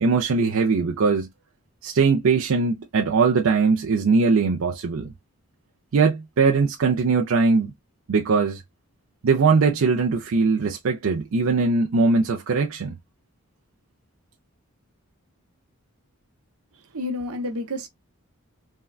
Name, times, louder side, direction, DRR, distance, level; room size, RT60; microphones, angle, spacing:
voice 1, 0.0-1.3 1.8-5.1 5.9-7.7 8.1-8.6 9.2-13.0, right 4 dB, 70° right, 0.5 m, -21 dB
voice 2, 16.7-17.9, left 1 dB, 90° right, 0.9 m, -30 dB
3.6 x 2.2 x 2.2 m
head